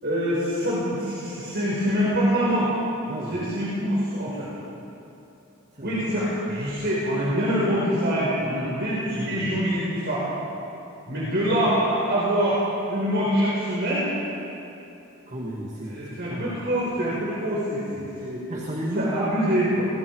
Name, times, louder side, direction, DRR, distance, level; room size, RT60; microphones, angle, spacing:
voice 1, 0.0-2.7 3.3-4.5 5.8-10.3 11.1-12.6 12.9-14.1 15.9-18.4 18.9-19.9, equal, 50° right, -7 dB, 5.1 m, -25 dB
voice 2, 3.1-3.5 5.7-6.0 9.2-9.7 15.3-16.6 17.9-19.2, equal, 35° right, -3 dB, 2.3 m, -34 dB
30.0 x 21.5 x 4.9 m, 2.9 s
head